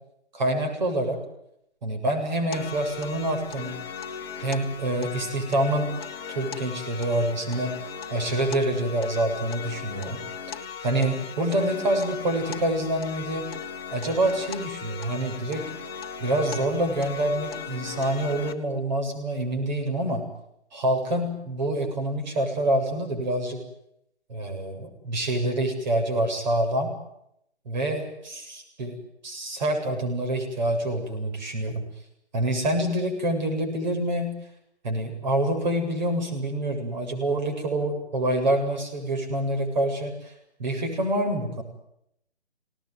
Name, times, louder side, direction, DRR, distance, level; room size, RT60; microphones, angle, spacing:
voice 1, 0.3-1.2 1.8-3.8 4.4-5.9 6.3-10.2 10.8-13.5 13.9-15.7 16.2-20.3 20.7-23.6 24.3-26.9 27.7-29.0 29.2-31.9 32.3-34.3 34.8-40.3 40.6-41.6, right 1 dB, 40° right, 4 dB, 7.8 m, -26 dB
sound 1, 2.5-18.5, left 7 dB, 25° left, 1.5 m, -38 dB
26.5 x 19.0 x 9.3 m, 0.77 s
figure-of-eight pair, 145°, 34 cm